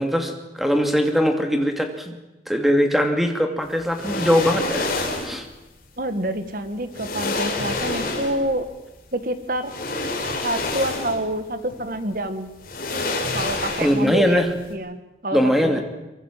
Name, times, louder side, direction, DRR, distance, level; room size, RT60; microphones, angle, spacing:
voice 1, 0.0-2.1 2.5-4.9 5.2-5.5 13.8-14.5 15.3-15.8, equal, ahead, 5 dB, 2.6 m, -21 dB
sound 1, 3.9-5.4 6.5-6.6 6.9-8.5 9.6-11.3 11.7-11.8 12.6-14.2 14.5-14.7, left 2 dB, 50° left, 4.8 m, -27 dB
voice 2, 6.0-8.7 9.1-9.7 10.4-12.5 13.3-14.4 14.7-15.8, right 1 dB, 50° right, 10 dB, 1.9 m, -27 dB
24.0 x 23.0 x 7.6 m, 1.0 s
head